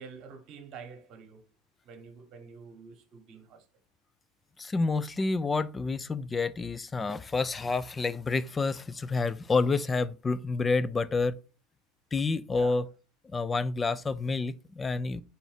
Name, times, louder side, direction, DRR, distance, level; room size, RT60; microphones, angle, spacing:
voice 1, 0.0-1.4 1.8-3.6 12.5-12.7, right 5 dB, 50° right, 1.0 m, -47 dB
voice 2, 4.6-11.3 12.1-12.9 13.3-15.2, left 3 dB, 20° left, 0.4 m, -29 dB
4.2 x 2.6 x 4.8 m
supercardioid pair, 105°, 0 cm